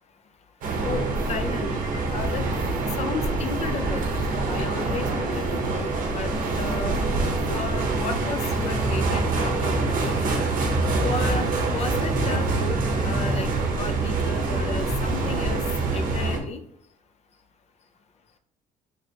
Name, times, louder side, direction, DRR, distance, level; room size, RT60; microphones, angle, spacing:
sound 1, 0.6-16.4, right 3 dB, 55° right, 0.8 m, -25 dB
voice 1, 0.8-1.8 2.1-2.5 3.0-4.0 4.3-7.0 7.5-10.3 11.0-13.5 13.8-15.6 15.9-16.6, left 4 dB, 40° left, 8 dB, 0.5 m, -33 dB
3.3 x 3.2 x 2.8 m, 0.68 s
cardioid pair, 110°, 17 cm